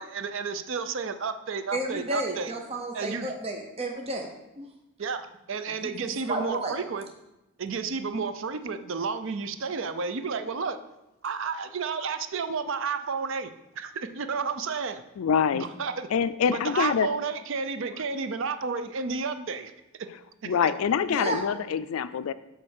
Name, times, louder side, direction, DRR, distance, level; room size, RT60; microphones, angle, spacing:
voice 1, 0.0-2.5 2.9-3.3 5.0-7.0 7.6-10.8 11.2-13.5 13.8-15.0 15.5-16.1 16.5-19.7 20.6-20.7, right 5 dB, 60° right, 10 dB, 0.5 m, -31 dB
voice 2, 1.7-4.3 4.6-4.7 5.7-6.8 21.1-21.4, right 2 dB, 30° right, 2 dB, 0.7 m, -32 dB
voice 3, 15.2-15.7 16.1-17.1 20.5-22.3, left 7 dB, 75° left, 14 dB, 0.3 m, -25 dB
8.6 x 3.3 x 6.5 m, 0.95 s
head